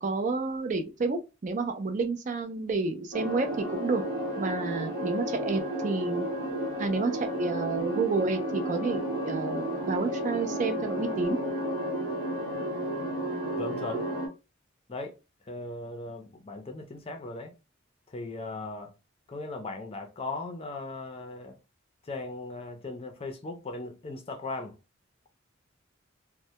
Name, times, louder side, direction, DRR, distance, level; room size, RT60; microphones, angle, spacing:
voice 1, 0.0-4.0 4.4-6.2 6.8-11.4, right 3 dB, 40° right, 0.4 m, -30 dB
sound 1, 3.1-14.3, right 1 dB, 70° right, 1.0 m, -32 dB
voice 2, 13.6-14.1 14.9-15.2 15.5-17.5 18.1-18.9 19.3-21.6 22.0-24.7, left 2 dB, 30° left, 0.5 m, -38 dB
2.1 x 2.1 x 2.8 m
head